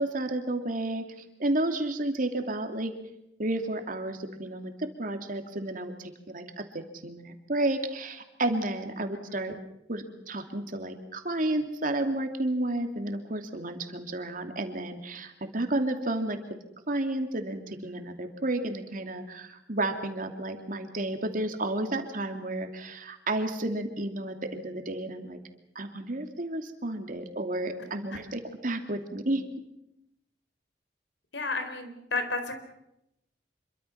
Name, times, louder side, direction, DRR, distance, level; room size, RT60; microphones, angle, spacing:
voice 1, 0.0-2.9 3.4-9.6 9.9-16.4 16.9-25.4 25.7-29.4, right 1 dB, 50° right, 6 dB, 2.8 m, -31 dB
voice 2, 9.1-9.5 28.1-28.2 31.3-32.6, left 3 dB, 85° left, 8 dB, 4.2 m, -33 dB
26.5 x 23.5 x 5.9 m, 0.83 s
head